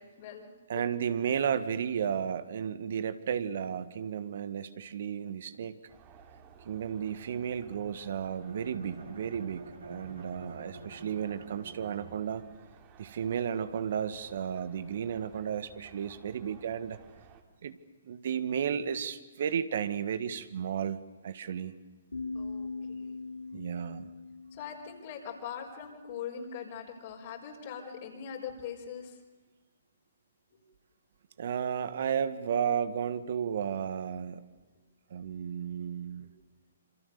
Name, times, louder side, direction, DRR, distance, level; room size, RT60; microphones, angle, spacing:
voice 1, 0.0-0.8 22.3-23.2 24.5-29.2 30.5-30.6, left 7 dB, 50° left, -1 dB, 5.0 m, -42 dB
voice 2, 0.7-5.8 6.6-12.4 13.0-17.0 17.6-17.8 18.0-21.0 21.2-21.7 23.5-24.1 31.4-34.5 35.1-36.3, right 8 dB, 55° right, 13 dB, 1.7 m, -33 dB
sound 1, 5.9-17.4, right 7 dB, 30° right, 2.9 m, -56 dB
Bowed string instrument, 8.3-12.6, right 3 dB, 75° right, 4.8 m, -48 dB
sound 2, 22.1-26.0, left 3 dB, 85° left, 5.1 m, -41 dB
27.5 x 26.5 x 6.8 m, 1.3 s
figure-of-eight pair, 125°, 0 cm